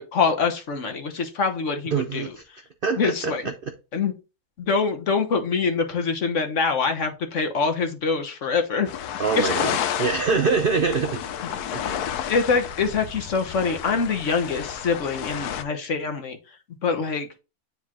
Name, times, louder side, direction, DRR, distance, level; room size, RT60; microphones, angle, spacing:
voice 1, 0.0-2.3 3.0-3.4 3.9-4.1 4.6-8.9 9.4-9.5 12.3-16.4 16.8-17.3, left 5 dB, 55° left, 1.2 m, -24 dB
voice 2, 1.9-2.4 2.8-3.3 3.6-3.7 9.2-11.2 11.7-12.2, right 5 dB, 60° right, 0.5 m, -24 dB
sound 1, 8.9-15.6, left 9 dB, 90° left, 1.1 m, -31 dB
9.6 x 3.6 x 2.9 m
omnidirectional pair, 1.6 m